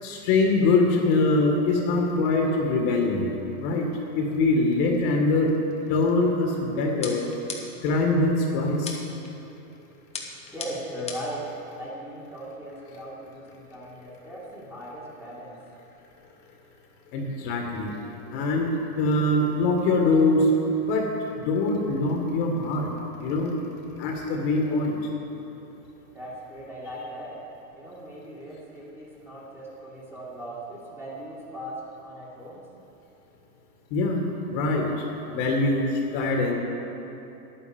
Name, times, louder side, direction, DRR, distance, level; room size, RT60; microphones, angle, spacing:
voice 1, 0.0-3.2 3.6-3.9 4.1-5.5 5.9-7.2 7.8-9.0 17.1-17.9 18.3-20.5 20.8-21.1 21.5-22.9 23.2-23.5 24.0-25.0 33.9-34.2 34.5-35.0 35.3-36.5, left 2 dB, 45° left, 1 dB, 2.0 m, -23 dB
sound 1, 7.0-7.9 8.9-9.3 10.1-11.4, left 4 dB, 15° left, 1.0 m, -37 dB
voice 2, 10.5-15.6 24.6-24.8 26.1-27.4 27.7-32.6, right 1 dB, 5° right, -6 dB, 2.2 m, -38 dB
10.5 x 9.3 x 7.1 m, 2.9 s
supercardioid pair, 140°, 45 cm